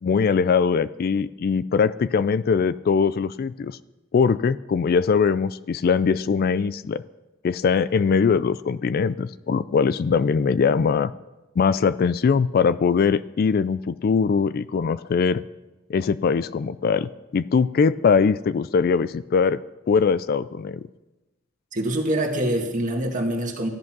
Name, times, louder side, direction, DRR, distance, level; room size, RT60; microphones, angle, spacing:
voice 1, 0.0-3.8 4.1-7.0 7.4-11.1 11.6-15.4 15.9-19.6 19.9-20.9, left 5 dB, 45° left, 17 dB, 0.3 m, -21 dB
voice 2, 21.7-23.7, right 1 dB, 40° right, 3 dB, 2.0 m, -25 dB
13.5 x 11.0 x 6.0 m, 1.1 s
head